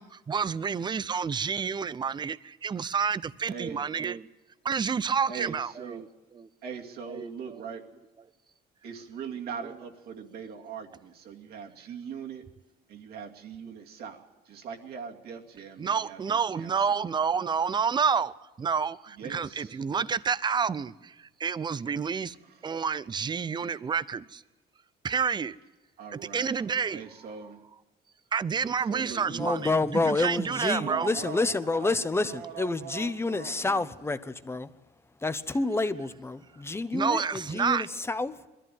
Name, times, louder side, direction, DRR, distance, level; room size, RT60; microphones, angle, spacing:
voice 1, 0.0-4.3 4.6-6.1 6.3-6.5 7.1-7.6 15.8-22.4 22.6-24.4 25.0-25.6 26.1-27.1 28.3-31.1 36.9-37.9, right 6 dB, 25° right, 0.6 m, -29 dB
voice 2, 3.5-3.8 5.3-6.0 6.6-7.8 8.8-12.4 12.9-17.0 19.2-19.8 23.6-23.7 26.0-26.5 26.9-27.6 28.9-29.7 30.8-33.9, right 6 dB, 70° right, 2.5 m, -41 dB
voice 3, 29.3-34.7 35.2-38.4, left 3 dB, 15° left, 0.9 m, -29 dB
21.5 x 14.0 x 9.3 m
cardioid pair, 110°, 17 cm